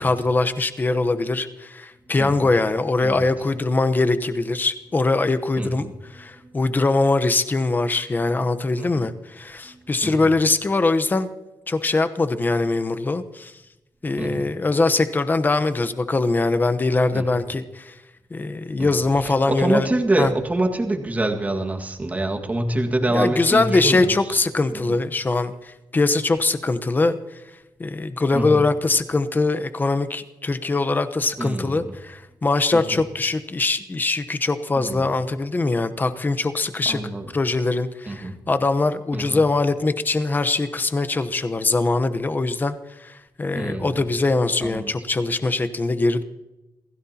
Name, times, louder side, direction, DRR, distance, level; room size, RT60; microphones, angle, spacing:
voice 1, 0.0-5.9 6.1-11.3 11.7-13.5 14.0-18.0 18.3-19.9 20.2-20.3 23.1-27.2 27.8-37.0 37.3-46.2, left 3 dB, 25° left, 10 dB, 1.0 m, -22 dB
voice 2, 5.6-5.9 6.4-6.5 8.8-9.1 9.7-10.2 14.2-14.5 17.1-17.4 18.8-24.3 24.7-25.0 28.3-28.6 31.4-31.9 32.7-32.8 34.8-35.1 36.9-37.3 38.1-38.4 39.1-39.4 43.6-44.0 44.6-44.9, right 2 dB, 20° right, 3 dB, 1.9 m, -26 dB
27.5 x 16.5 x 2.9 m, 1.0 s
wide cardioid pair, 125°, 7 cm